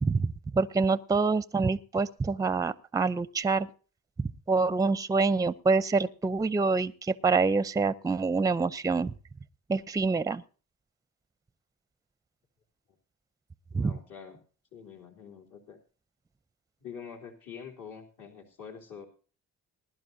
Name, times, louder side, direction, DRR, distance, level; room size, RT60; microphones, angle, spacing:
voice 1, 0.0-3.7 4.5-9.1 9.7-10.4 13.7-13.9, right 4 dB, 10° right, 0.5 m, -26 dB
voice 2, 13.7-14.4 14.7-15.8 16.8-19.1, left 7 dB, 65° left, 3.1 m, -45 dB
20.5 x 11.0 x 2.6 m
cardioid pair, 95°, 33 cm